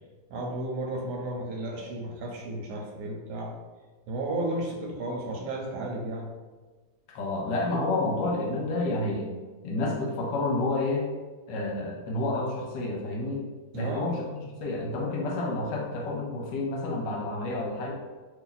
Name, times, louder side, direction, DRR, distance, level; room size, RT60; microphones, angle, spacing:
voice 1, 0.3-3.5 4.1-6.3 13.7-14.1, right 1 dB, 75° right, -1 dB, 1.1 m, -33 dB
voice 2, 7.1-9.3 9.6-11.1 11.5-13.4 13.7-17.9, left 2 dB, 75° left, -1 dB, 1.3 m, -29 dB
2.9 x 2.6 x 3.9 m, 1.3 s
omnidirectional pair, 2.0 m